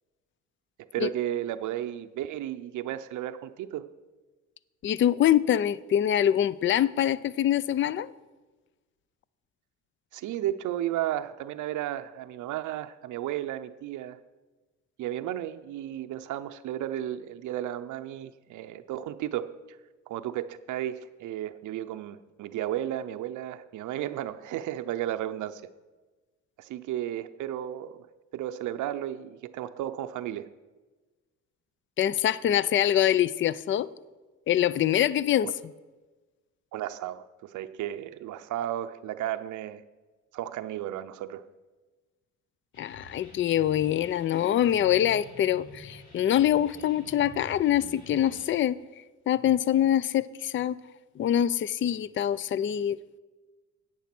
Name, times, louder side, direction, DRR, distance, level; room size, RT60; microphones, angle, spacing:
voice 1, 0.9-3.9 10.1-14.2 15.0-19.5 20.1-25.6 26.6-28.1 28.3-30.5 35.4-35.5 36.7-39.8 40.3-41.5, right 12 dB, 80° right, 0.6 m, -33 dB
voice 2, 4.8-8.1 32.0-33.9 34.5-35.5 42.8-48.8 49.3-50.8 51.2-53.0, left 11 dB, 40° left, 0.4 m, -24 dB
sound 1, 42.7-48.5, left 2 dB, 80° left, 2.4 m, -49 dB
10.5 x 8.6 x 5.9 m
cardioid pair, 90°, 30 cm